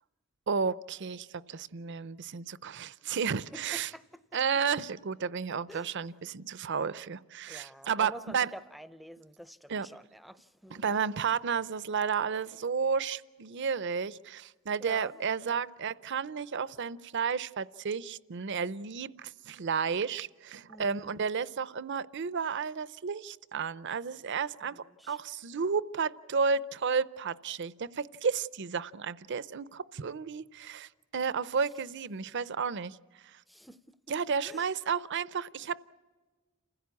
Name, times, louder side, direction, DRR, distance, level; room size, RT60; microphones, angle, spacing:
voice 1, 0.5-3.9 4.3-8.5 9.7-9.9 10.7-33.0 33.2-33.4 34.1-35.8, right 6 dB, 60° right, 0.6 m, -32 dB
voice 2, 3.5-4.2 5.7-5.9 7.4-11.0 14.8-15.7 20.7-21.2 24.6-25.2 33.5-34.1 34.4-34.7, equal, ahead, 0.6 m, -49 dB
29.0 x 16.0 x 8.3 m
head